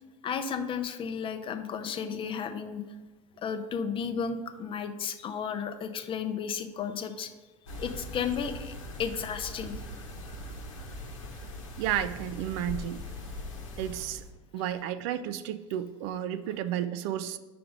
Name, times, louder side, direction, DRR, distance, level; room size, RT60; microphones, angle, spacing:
voice 1, 0.2-2.8 3.4-7.3 7.8-9.8, left 6 dB, 30° left, 8 dB, 0.6 m, -33 dB
sound 1, 7.7-14.3, left 1 dB, 80° left, 1.0 m, -41 dB
voice 2, 11.8-13.0 13.8-14.2 14.5-17.4, right 11 dB, 60° right, 13 dB, 0.4 m, -32 dB
5.1 x 4.7 x 5.0 m, 1.3 s
hypercardioid pair, 80°, 16 cm